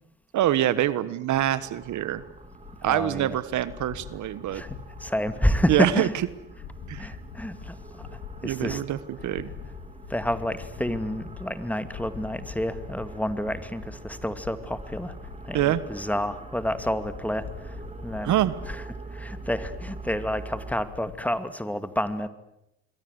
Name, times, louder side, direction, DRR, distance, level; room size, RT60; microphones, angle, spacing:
voice 1, 0.3-2.2 2.8-4.6 5.7-6.1 6.9-7.1 8.4-9.0 9.2-9.5 15.5-15.8 18.2-18.6, right 13 dB, 65° right, 16 dB, 1.4 m, -25 dB
sound 1, 1.4-20.8, right 3 dB, 20° right, 3.3 m, -44 dB
sound 2, 1.8-21.1, left 8 dB, 80° left, 3.5 m, -44 dB
voice 2, 2.8-3.4 4.5-6.1 7.0-8.1 8.4-8.8 10.1-15.2 15.4-18.4 18.6-18.8 19.1-22.3, left 1 dB, 5° left, 11 dB, 2.3 m, -29 dB
27.0 x 23.0 x 8.2 m, 0.84 s
supercardioid pair, 75°, 32 cm